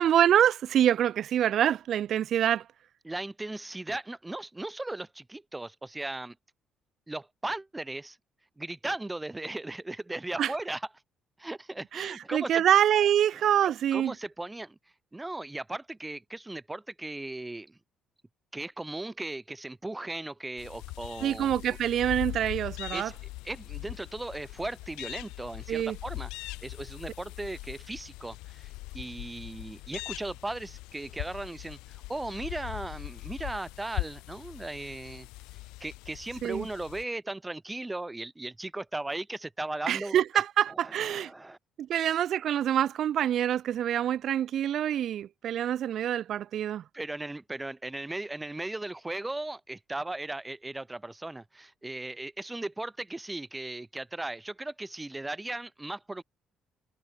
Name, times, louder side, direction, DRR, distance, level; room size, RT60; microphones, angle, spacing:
voice 1, 0.0-2.6 10.4-10.5 11.9-14.1 21.2-23.1 25.7-26.0 36.4-36.7 39.9-41.3 41.8-46.8, right 10 dB, 65° right, 0.6 m, -26 dB
voice 2, 3.0-6.4 7.1-8.2 8.6-10.9 11.4-12.6 13.6-14.8 15.1-17.8 18.5-21.5 22.9-23.1 23.4-35.3 35.8-40.4 40.7-41.6 41.9-42.1 46.9-56.2, right 2 dB, 15° right, 1.8 m, -37 dB
sound 1, 20.6-37.0, left 21 dB, 90° left, 1.3 m, -41 dB
supercardioid pair, 75°, 0 cm